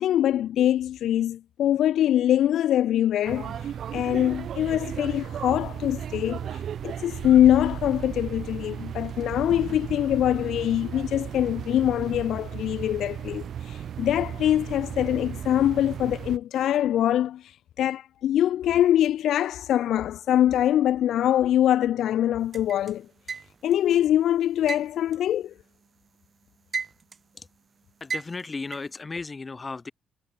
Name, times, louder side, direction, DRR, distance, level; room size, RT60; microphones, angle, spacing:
voice 1, 0.0-23.1 23.6-25.5, left 11 dB, 75° left, 0.3 m, -23 dB
sound 1, 3.3-16.4, right 9 dB, 60° right, 1.0 m, -35 dB
sound 2, 22.5-23.8 24.7-26.1 26.4-27.3 28.1-29.0, right 5 dB, 40° right, 0.4 m, -34 dB
voice 2, 28.0-29.9, left 4 dB, 30° left, 4.5 m, -35 dB
cardioid pair, 90°, 0 cm